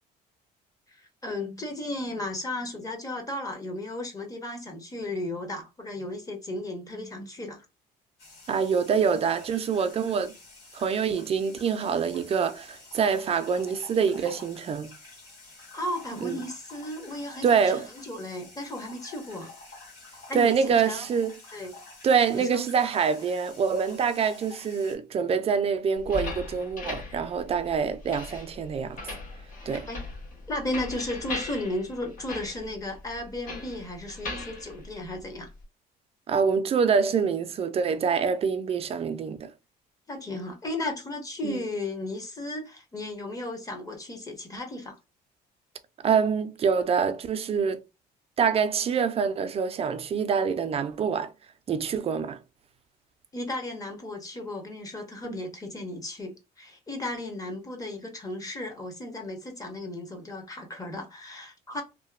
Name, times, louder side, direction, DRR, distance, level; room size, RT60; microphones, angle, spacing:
voice 1, 0.9-7.7 15.6-19.5 20.3-21.0 21.5-21.8 22.3-22.6 29.9-30.0 30.5-35.5 40.1-45.0 53.3-61.8, left 1 dB, 20° left, 0.9 m, -35 dB
sound 1, 8.2-25.0, left 3 dB, 75° left, 1.4 m, -49 dB
voice 2, 8.5-10.3 10.7-14.9 16.2-16.4 17.4-17.9 20.3-21.3 22.0-29.0 29.7-29.9 36.3-39.5 41.4-41.6 46.0-47.8 48.4-51.3 51.7-52.4 55.2-55.4, right 6 dB, 35° right, 0.4 m, -25 dB
sound 2, 26.0-35.6, left 3 dB, 55° left, 1.1 m, -39 dB
2.8 x 2.1 x 2.4 m
cardioid pair, 110°, 17 cm